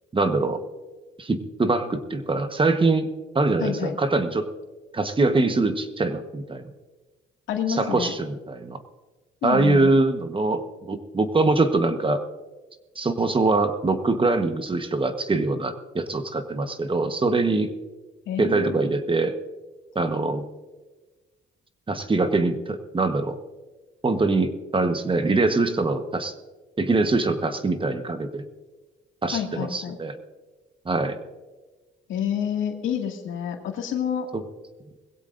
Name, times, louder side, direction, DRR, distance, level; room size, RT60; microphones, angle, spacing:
voice 1, 0.1-0.6 1.2-4.5 4.9-6.7 7.7-8.8 9.4-12.2 13.0-17.7 18.4-19.4 19.9-20.4 21.9-23.4 24.0-26.3 26.8-28.4 29.2-30.2 30.8-31.2 34.3-34.4, right 3 dB, 25° right, 8 dB, 1.2 m, -23 dB
voice 2, 3.6-4.0 7.5-8.1 9.4-9.9 18.3-18.8 29.3-30.0 32.1-34.3, left 8 dB, 80° left, 2 dB, 2.2 m, -28 dB
21.0 x 16.5 x 2.6 m, 1.2 s
cardioid pair, 90°, 20 cm